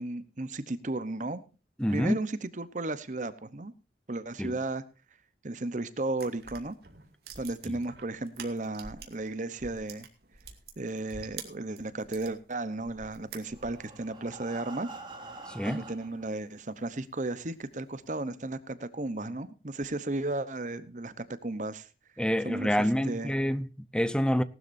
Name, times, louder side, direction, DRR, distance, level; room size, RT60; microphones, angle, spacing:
voice 1, 0.0-1.4 1.9-3.7 4.1-4.8 5.4-6.7 7.4-10.1 10.8-14.9 15.6-21.9 22.4-23.3, right 2 dB, 45° right, 0.9 m, -34 dB
voice 2, 1.8-2.2 4.4-4.6 7.7-7.8 15.5-15.8 22.2-24.4, equal, 5° left, 0.7 m, -27 dB
sound 1, 6.1-9.3 9.6-12.3 12.8-13.9, right 6 dB, 60° right, 2.5 m, -46 dB
Breathing, 13.3-16.3 17.0-17.1 17.5-17.6 18.0-18.1, right 3 dB, 25° right, 2.7 m, -45 dB
18.5 x 12.0 x 2.7 m
head